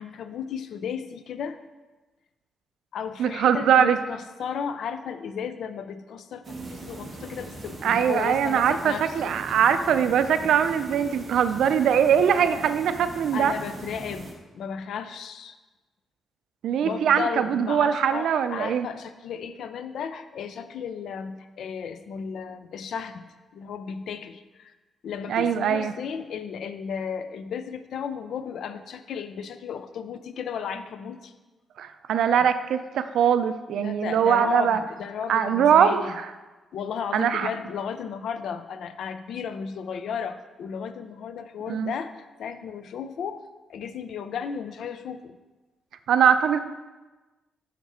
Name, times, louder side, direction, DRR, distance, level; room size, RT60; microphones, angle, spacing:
voice 1, 0.0-1.6 2.9-9.4 13.3-15.6 16.8-24.7 25.0-31.3 33.8-36.2 36.7-43.4 43.7-45.4, left 7 dB, 60° left, 10 dB, 0.4 m, -34 dB
voice 2, 3.2-4.0 7.8-13.5 16.6-18.9 25.3-25.9 31.8-34.8 35.3-36.3 37.1-37.5 41.7-41.9 46.1-46.6, right 8 dB, 70° right, 11 dB, 0.4 m, -22 dB
sound 1, 6.4-14.3, right 2 dB, 25° right, 0.9 m, -40 dB
5.9 x 5.9 x 4.2 m, 1.2 s
wide cardioid pair, 175°, 0 cm